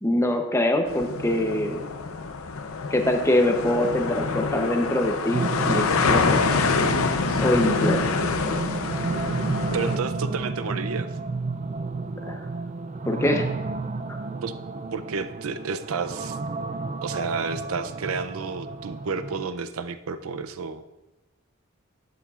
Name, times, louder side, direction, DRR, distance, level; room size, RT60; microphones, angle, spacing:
voice 1, 0.0-1.9 2.9-6.4 7.4-8.0 12.3-12.5 13.1-13.5 14.1-14.2, left 1 dB, 15° left, 4 dB, 0.7 m, -24 dB
sound 1, 0.9-10.0, left 4 dB, 85° left, 0.6 m, -26 dB
sound 2, 5.3-19.4, right 3 dB, 35° right, 0.3 m, -31 dB
voice 2, 9.7-11.1 14.4-14.5 14.9-16.4 17.0-20.9, right 5 dB, 85° right, 11 dB, 0.5 m, -31 dB
11.5 x 8.5 x 2.4 m, 1.1 s
head